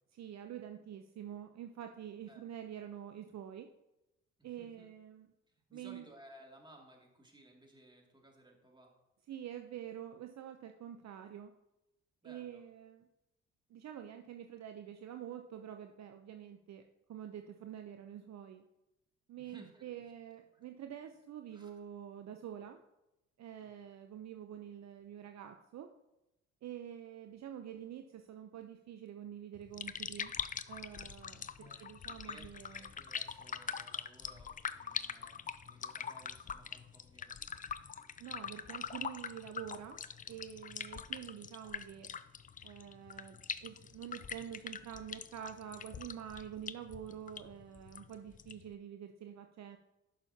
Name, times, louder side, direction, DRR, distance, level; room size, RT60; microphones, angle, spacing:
voice 1, 0.1-3.7 4.4-5.3 5.7-6.1 9.3-11.5 12.2-13.1 13.7-16.8 17.1-18.6 19.3-22.8 23.4-25.9 26.6-30.3 30.7-32.9 38.2-40.0 40.3-42.1 42.6-49.8, right 10 dB, 50° right, 6 dB, 0.6 m, -47 dB
voice 2, 4.4-4.9 5.5-8.9 12.2-12.6 19.4-20.1 20.5-20.6 21.5-21.7 23.6-23.7 31.3-37.4 40.9-41.2, right 1 dB, 15° right, 0 dB, 2.3 m, -60 dB
sound 1, 29.5-48.7, left 7 dB, 25° left, 0.4 m, -44 dB
11.0 x 6.3 x 2.8 m, 0.93 s
hypercardioid pair, 55°, 34 cm